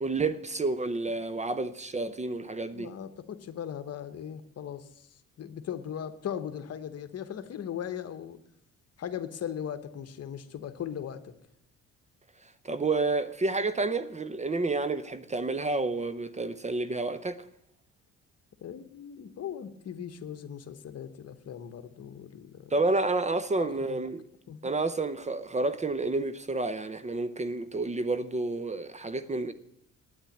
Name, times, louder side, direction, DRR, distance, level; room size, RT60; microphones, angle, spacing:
voice 1, 0.0-2.9 12.6-17.4 22.7-24.2 24.6-29.5, right 3 dB, 25° right, 0.7 m, -30 dB
voice 2, 2.7-8.4 9.0-11.3 18.6-22.7 23.6-24.0 24.5-24.7, left 9 dB, 55° left, 1.1 m, -39 dB
9.1 x 9.0 x 8.5 m
cardioid pair, 90°, 30 cm